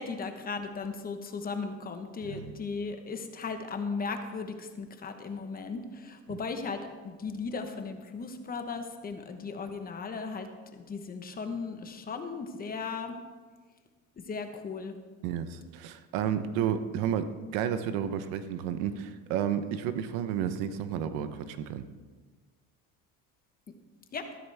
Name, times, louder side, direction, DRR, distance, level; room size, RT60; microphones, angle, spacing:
voice 1, 0.0-10.5 10.7-13.1 14.3-15.0 24.1-24.3, left 4 dB, 25° left, 6 dB, 1.1 m, -36 dB
voice 2, 2.2-2.5 6.3-6.4 15.2-21.9, right 9 dB, 85° right, 11 dB, 0.9 m, -32 dB
13.5 x 12.5 x 3.4 m, 1.4 s
cardioid pair, 135°, 34 cm